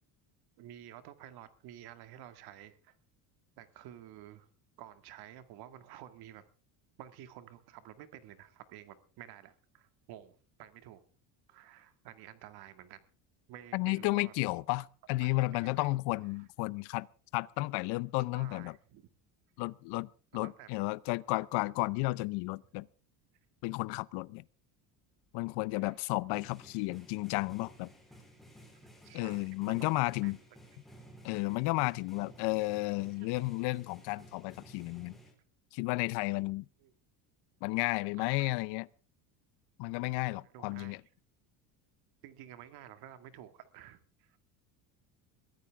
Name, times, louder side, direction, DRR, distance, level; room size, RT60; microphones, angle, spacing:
voice 1, 0.6-3.0 3.6-4.5 4.8-6.4 7.0-11.0 11.5-13.0 13.5-14.3 15.2-15.9 18.3-19.0 20.3-20.7 25.8-25.9 29.0-30.3 31.4-31.5 33.2-33.3 36.8-36.9 38.2-38.5 40.5-40.9 42.2-44.4, right 12 dB, 60° right, 2.1 m, -51 dB
voice 2, 13.7-17.1 17.3-18.8 19.6-22.9 23.6-24.4 25.3-27.9 29.1-30.4 31.2-35.2 35.7-36.7 37.6-38.9 39.8-41.0, left 22 dB, 65° left, 0.8 m, -33 dB
sound 1, 25.9-35.3, equal, ahead, 4.0 m, -56 dB
22.5 x 14.5 x 3.6 m
cardioid pair, 160°, 43 cm